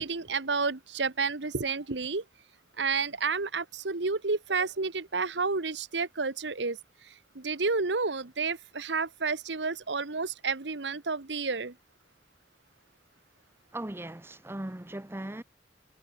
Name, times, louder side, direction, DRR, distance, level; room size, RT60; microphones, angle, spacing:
voice 1, 0.0-2.2 2.8-6.8 7.0-11.7, right 4 dB, 85° right, 1.3 m, -30 dB
voice 2, 13.7-15.4, right 1 dB, 15° right, 0.8 m, -38 dB
head